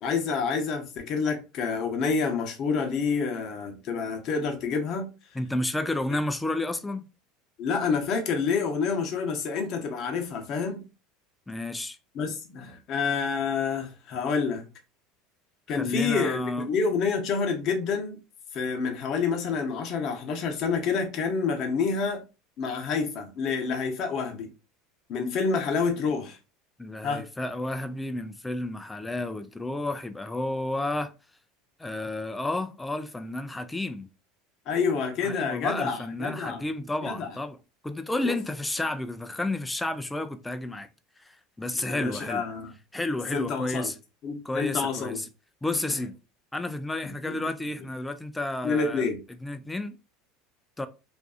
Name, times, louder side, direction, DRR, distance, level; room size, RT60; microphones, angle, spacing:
voice 1, 0.0-5.1 7.6-10.8 12.1-14.7 15.7-18.2 18.5-22.2 22.6-24.5 25.1-26.4 27.0-27.2 34.7-36.6 37.0-37.3 38.2-38.4 41.7-42.7 43.3-43.9 44.2-45.2 47.0-47.4 48.6-49.2, left 5 dB, 50° left, 0.7 m, -28 dB
voice 2, 5.3-7.0 11.5-12.0 15.7-16.7 26.8-31.1 31.8-34.1 35.2-37.6 37.8-40.9 41.2-42.4 42.9-43.9 44.4-45.3 45.6-46.1 46.5-49.1 49.4-49.9 50.8-50.9, left 2 dB, 10° left, 0.3 m, -31 dB
2.5 x 2.3 x 2.3 m
supercardioid pair, 110°, 0 cm